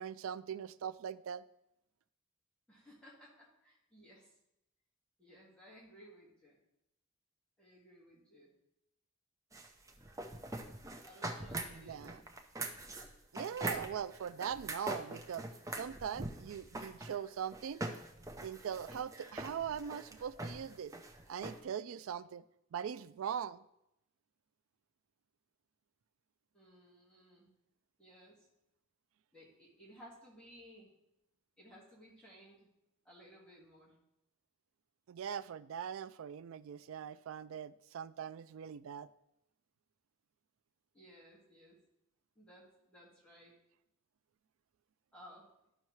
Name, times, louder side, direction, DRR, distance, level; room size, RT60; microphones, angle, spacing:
voice 1, 0.0-1.4 11.7-12.2 13.3-15.5 15.7-17.8 18.4-20.9 21.3-22.4 22.7-23.7 35.1-39.1, right 8 dB, 75° right, 15 dB, 0.3 m, -41 dB
voice 2, 2.7-4.3 5.2-6.6 7.6-8.5 11.0-12.2 20.3-20.5 26.5-27.5 28.0-28.5 29.3-30.9 31.6-32.7 33.1-34.0 40.9-41.8 42.4-43.5 45.1-45.5, equal, 5° left, -6 dB, 1.7 m, -58 dB
sound 1, 9.5-21.6, right 2 dB, 15° right, 0.6 m, -43 dB
12.0 x 5.5 x 3.1 m, 0.85 s
head